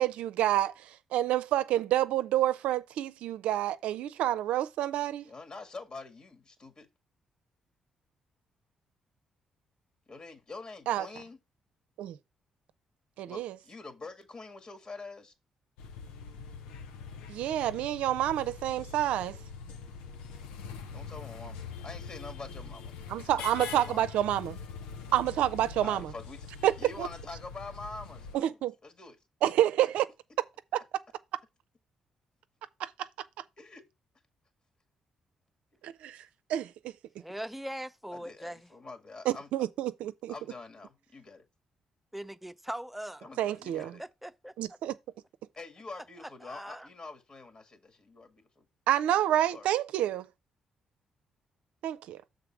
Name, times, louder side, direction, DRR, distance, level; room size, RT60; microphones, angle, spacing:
voice 1, 0.0-5.3 10.9-11.1 12.0-12.2 13.2-13.6 17.3-19.4 23.1-24.6 25.1-26.1 26.6-26.7 27.0-27.1 28.3-28.7 29.4-30.1 30.7-30.8 32.8-33.1 35.8-36.2 36.5-36.7 39.3-40.3 43.4-44.0 44.6-44.9 48.9-50.3 51.8-52.2, right 12 dB, 70° right, 0.5 m, -28 dB
voice 2, 5.2-6.9 10.1-11.4 13.3-15.3 20.9-22.9 23.2-24.1 25.8-29.2 29.4-29.5 29.8-29.9 33.6-33.8 35.7-35.8 38.1-39.5 40.3-41.4 43.2-44.0 45.6-48.7 49.4-49.7, left 3 dB, 45° left, 1.9 m, -46 dB
sound 1, 15.8-28.4, left 5 dB, 80° left, 0.8 m, -43 dB
voice 3, 37.2-38.7 42.1-43.2 44.0-44.5 46.4-46.9, right 1 dB, 5° right, 0.7 m, -40 dB
6.9 x 3.8 x 5.9 m
hypercardioid pair, 45°, 2 cm